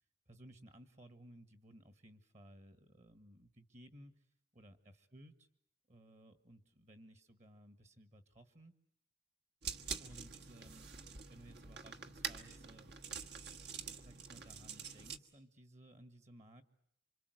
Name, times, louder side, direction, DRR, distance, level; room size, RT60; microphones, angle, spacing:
voice 1, 0.3-4.3 4.5-5.5 5.9-8.7 9.9-12.9 14.0-16.6, right 1 dB, 40° right, 10 dB, 1.7 m, -59 dB
sound 1, 9.6-15.2, right 6 dB, 60° right, 1.5 m, -46 dB
27.5 x 26.0 x 8.0 m, 0.68 s
head